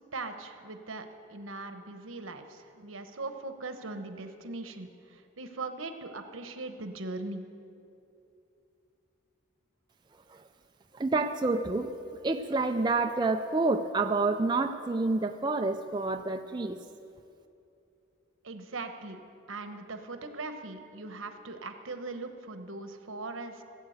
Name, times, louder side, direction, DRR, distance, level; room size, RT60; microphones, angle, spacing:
voice 1, 0.1-7.5 18.4-19.2 19.5-23.6, right 3 dB, 80° right, 7 dB, 1.1 m, -40 dB
voice 2, 10.9-11.9 12.2-16.8, right 3 dB, 20° right, 5 dB, 0.4 m, -28 dB
16.5 x 8.1 x 8.0 m, 2.7 s
head